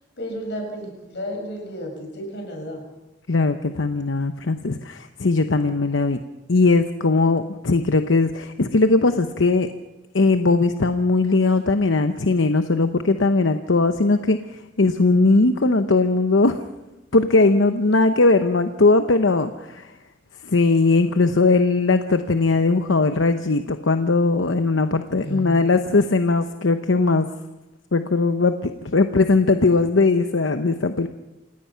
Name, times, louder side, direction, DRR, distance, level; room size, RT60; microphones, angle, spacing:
voice 1, 0.2-2.8 25.2-25.7, equal, 60° left, 2 dB, 6.5 m, -32 dB
voice 2, 3.3-6.2 6.5-9.7 10.1-16.6 17.1-19.9 20.4-27.3 27.9-31.1, left 3 dB, 85° left, 8 dB, 0.9 m, -19 dB
28.5 x 17.0 x 5.8 m, 1.0 s
head